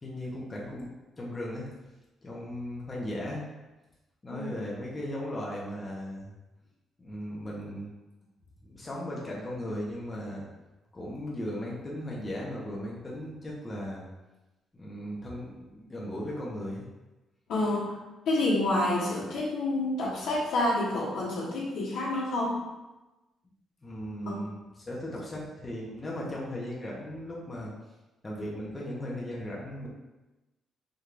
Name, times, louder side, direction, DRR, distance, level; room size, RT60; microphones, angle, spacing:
voice 1, 0.0-0.9 1.2-1.7 2.2-3.5 4.2-6.3 7.0-7.9 8.6-10.5 10.9-14.0 14.7-16.9 23.8-27.7 28.2-29.9, equal, 25° left, -5 dB, 1.2 m, -37 dB
voice 2, 17.5-17.9 18.2-22.6 24.2-24.4, left 2 dB, 75° left, -5 dB, 1.3 m, -28 dB
5.1 x 3.2 x 2.6 m, 1.1 s
cardioid pair, 90°, 0 cm